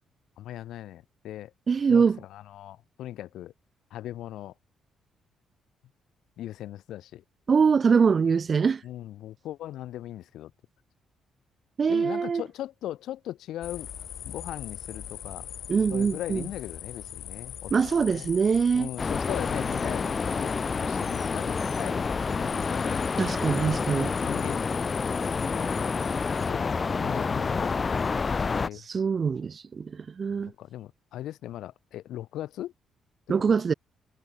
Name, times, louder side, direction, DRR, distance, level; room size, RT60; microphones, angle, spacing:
voice 1, 0.4-1.5 1.9-3.5 3.9-4.5 6.4-7.2 8.8-10.5 11.9-13.9 14.2-15.5 15.9-18.3 18.7-23.0 24.2-24.6 25.6-25.7 26.3-27.8 28.5-28.8 30.6-32.7, left 13 dB, 85° left, 0.5 m, -39 dB
voice 2, 1.7-2.2 7.5-8.8 11.8-12.4 15.7-16.5 17.7-18.9 23.2-24.2 28.9-30.5 33.3-33.7, right 5 dB, 40° right, 0.6 m, -23 dB
sound 1, 13.6-26.5, left 9 dB, 65° left, 1.7 m, -41 dB
sound 2, 19.0-28.7, left 4 dB, 30° left, 0.4 m, -28 dB
cardioid pair, 115°, 0 cm